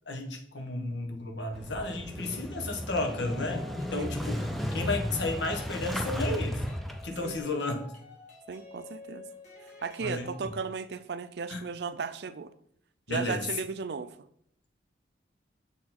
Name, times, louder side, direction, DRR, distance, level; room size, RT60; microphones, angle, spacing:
voice 1, 0.1-6.6 7.0-7.8 10.0-10.3 11.5-11.6 13.1-13.4, left 2 dB, 85° left, 3 dB, 1.3 m, -33 dB
Motorcycle / Engine starting, 1.5-7.4, equal, ahead, 0.5 m, -34 dB
sound 1, 3.0-10.4, left 3 dB, 40° left, 2.2 m, -49 dB
voice 2, 4.0-4.4 7.2-7.3 8.5-9.3 9.8-12.5 13.1-14.1, right 5 dB, 65° right, 14 dB, 0.4 m, -36 dB
7.2 x 4.5 x 4.2 m, 0.68 s
head